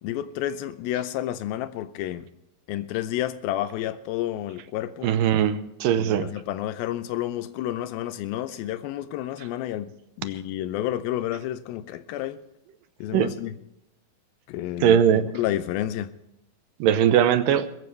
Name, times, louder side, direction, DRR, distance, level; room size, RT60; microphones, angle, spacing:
voice 1, 0.0-2.3 2.7-5.1 6.0-9.9 10.2-12.4 13.0-13.5 14.5-16.1, left 13 dB, 85° left, 12 dB, 2.5 m, -30 dB
voice 2, 5.0-6.3 13.1-13.3 14.8-15.3 16.8-17.7, right 9 dB, 75° right, 12 dB, 2.4 m, -20 dB
21.5 x 14.5 x 3.3 m, 0.86 s
omnidirectional pair, 4.2 m